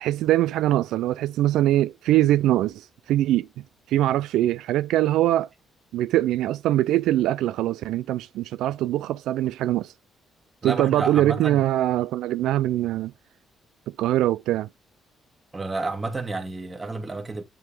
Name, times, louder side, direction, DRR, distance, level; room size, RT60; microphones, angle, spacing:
voice 1, 0.0-3.5 3.9-5.5 5.9-9.9 10.6-13.1 14.0-14.7, right 14 dB, 90° right, 0.3 m, -22 dB
voice 2, 10.6-11.6 15.5-17.4, right 3 dB, 25° right, 1.8 m, -30 dB
9.3 x 3.6 x 3.4 m
cardioid pair, 90°, 0 cm